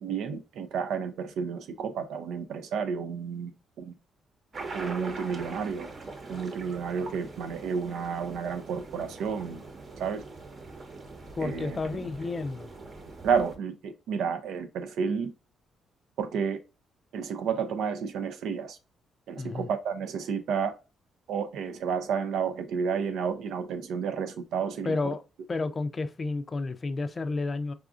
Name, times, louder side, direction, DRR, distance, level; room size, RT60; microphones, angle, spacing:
voice 1, 0.0-3.9 4.7-5.9 6.3-9.6 10.0-10.2 11.4-11.8 13.2-15.3 16.2-16.6 17.1-18.8 19.3-20.8 21.3-25.1, right 6 dB, 80° right, 0.4 m, -31 dB
sound 1, 4.5-13.6, right 3 dB, 45° right, 0.9 m, -43 dB
voice 2, 11.4-12.7 19.4-19.7 24.8-25.2 25.5-27.7, left 3 dB, 35° left, 0.4 m, -31 dB
4.8 x 2.4 x 2.4 m
cardioid pair, 90°, 0 cm